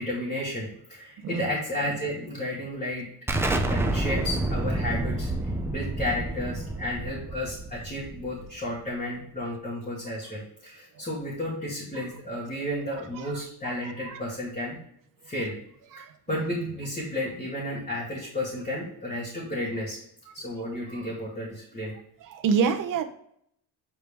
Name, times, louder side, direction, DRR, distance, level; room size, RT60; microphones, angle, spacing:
voice 1, 0.0-3.1 3.5-14.8 15.2-15.5 16.3-20.0 20.3-22.0, left 1 dB, 20° left, -7 dB, 2.1 m, -32 dB
Explosion, 3.3-8.7, right 2 dB, 5° right, 0.5 m, -29 dB
voice 2, 13.2-13.7 14.1-14.4 15.9-16.8 22.2-23.0, right 6 dB, 55° right, 7 dB, 0.9 m, -29 dB
6.8 x 4.6 x 3.4 m, 0.69 s
cardioid pair, 155°, 39 cm